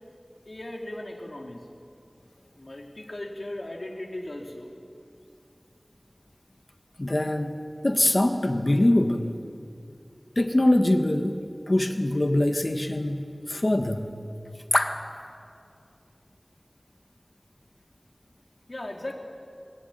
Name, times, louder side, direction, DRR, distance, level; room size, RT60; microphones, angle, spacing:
voice 1, 0.5-1.7 2.6-4.7 18.7-19.1, left 1 dB, 65° left, 1 dB, 2.8 m, -37 dB
voice 2, 7.0-7.5 7.8-9.3 10.3-11.4 11.7-14.1 14.7-15.0, left 1 dB, 50° left, 5 dB, 1.6 m, -23 dB
24.0 x 20.0 x 9.3 m, 2.4 s
wide cardioid pair, 40°, 0 cm